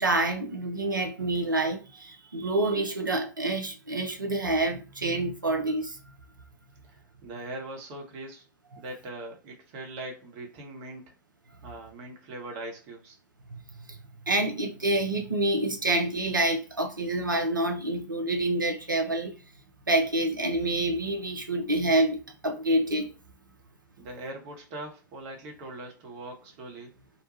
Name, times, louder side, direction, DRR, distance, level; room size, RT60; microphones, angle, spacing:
voice 1, 0.0-6.0 13.9-14.0 14.3-19.3 19.9-23.1, right 2 dB, 90° right, 0.5 m, -27 dB
voice 2, 6.8-8.4 8.8-11.1 11.6-13.2 24.0-26.9, right 2 dB, 45° right, 0.9 m, -41 dB
2.6 x 2.2 x 2.9 m
figure-of-eight pair, 90°, 10 cm